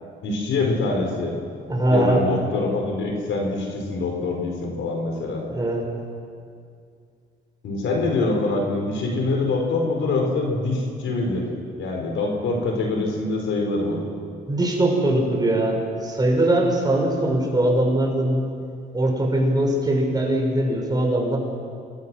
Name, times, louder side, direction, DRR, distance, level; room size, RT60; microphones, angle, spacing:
voice 1, 0.2-1.4 1.9-5.5 7.6-11.5 11.8-14.0, left 3 dB, 75° left, 2 dB, 4.7 m, -24 dB
voice 2, 1.7-2.3 5.5-5.8 13.7-13.8 14.5-18.4 18.9-21.4, right 1 dB, 20° right, 0 dB, 6.2 m, -21 dB
27.0 x 21.5 x 6.2 m, 2.3 s
cardioid pair, 90°, 20 cm